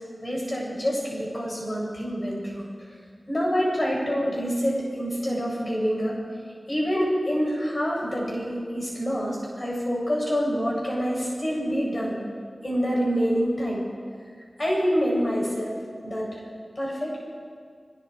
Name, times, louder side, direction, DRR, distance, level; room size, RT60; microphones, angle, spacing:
voice 1, 0.2-2.7 3.3-6.2 6.7-12.2 12.6-13.8 14.6-15.8 16.0-16.3 16.8-17.2, equal, 40° left, -4 dB, 7.7 m, -26 dB
26.0 x 22.5 x 4.8 m, 2.1 s
wide cardioid pair, 55°, 0 cm